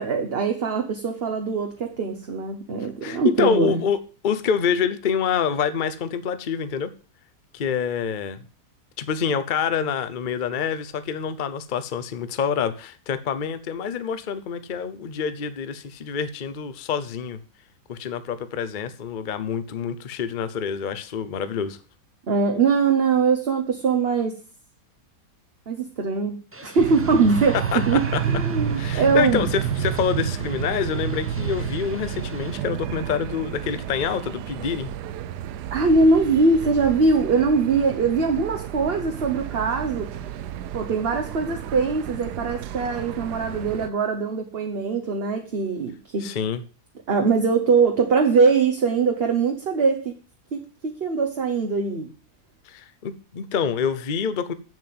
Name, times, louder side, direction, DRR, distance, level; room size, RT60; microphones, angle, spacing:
voice 1, 0.0-3.8 22.3-24.4 25.7-29.5 35.7-40.1 40.7-46.3 47.1-50.1 50.5-52.1, right 4 dB, 40° right, 1.2 m, -22 dB
voice 2, 3.0-4.0 4.2-6.9 7.5-8.4 9.0-17.4 17.9-21.8 27.7-27.8 28.1-28.2 28.8-34.9 46.2-46.6 52.7-54.5, left 7 dB, 40° left, 0.7 m, -26 dB
sound 1, 26.5-32.6, right 2 dB, 20° right, 0.3 m, -42 dB
sound 2, 26.8-43.9, right 9 dB, 75° right, 1.2 m, -31 dB
7.7 x 7.5 x 7.7 m
omnidirectional pair, 1.8 m